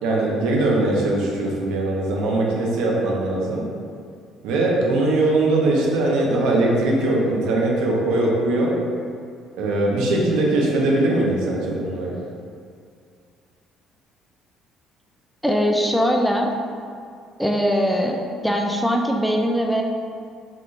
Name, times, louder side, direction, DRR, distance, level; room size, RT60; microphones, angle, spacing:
voice 1, 0.0-3.6 4.4-8.8 9.5-12.1, right 2 dB, 90° right, -3 dB, 0.9 m, -21 dB
voice 2, 15.4-16.5 17.4-19.8, equal, ahead, 1 dB, 0.4 m, -21 dB
5.8 x 2.6 x 3.2 m, 2.3 s
cardioid pair, 130°, 0 cm